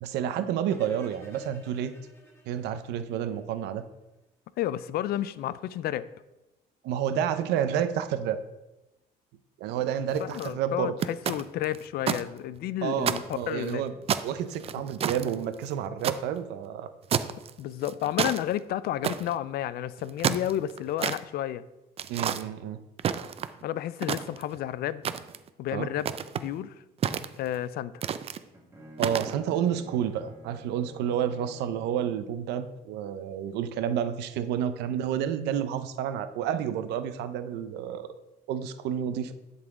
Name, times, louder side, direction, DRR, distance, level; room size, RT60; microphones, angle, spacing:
voice 1, 0.0-2.0 2.5-3.8 6.8-8.4 9.6-10.9 12.8-13.9 14.2-16.9 22.1-22.8 25.7-25.9 29.0-38.1 38.5-39.3, right 9 dB, 85° right, 11 dB, 0.6 m, -30 dB
sound 1, 0.7-3.8, equal, 15° left, 1.7 m, -54 dB
voice 2, 4.6-6.1 10.2-13.8 17.6-21.6 23.6-25.0 25.6-26.7 27.4-27.9, left 12 dB, 65° left, 16 dB, 0.4 m, -31 dB
sound 2, 10.1-10.5 11.0-12.2 12.6-12.7 13.0-13.7 14.1-16.2 17.1-17.5 17.8-18.4 19.0-19.4 20.0-21.2 22.0-22.4 23.0-23.6 24.0-24.6 25.0-25.5 26.0-26.5 27.0-27.6 28.0-28.4 29.0-29.3, right 8 dB, 35° right, 0.4 m, -29 dB
Bowed string instrument, 28.3-32.4, right 1 dB, 15° right, 1.5 m, -49 dB
10.5 x 4.1 x 3.6 m, 1.0 s
cardioid pair, 110°, 17 cm